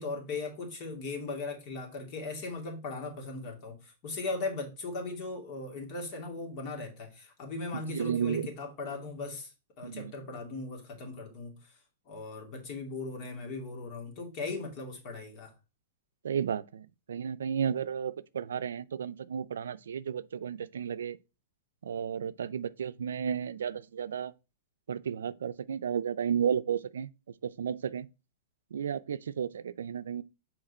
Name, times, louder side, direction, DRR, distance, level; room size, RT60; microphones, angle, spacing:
voice 1, 0.0-9.5 9.8-11.8 12.1-15.5, left 3 dB, 45° left, 2.6 m, -38 dB
voice 2, 7.7-8.5 9.8-10.1 16.2-21.2 21.8-24.3 24.9-27.1 27.4-28.1 28.7-30.2, right 8 dB, 90° right, 0.4 m, -33 dB
6.5 x 4.4 x 4.2 m
hypercardioid pair, 130°, 0 cm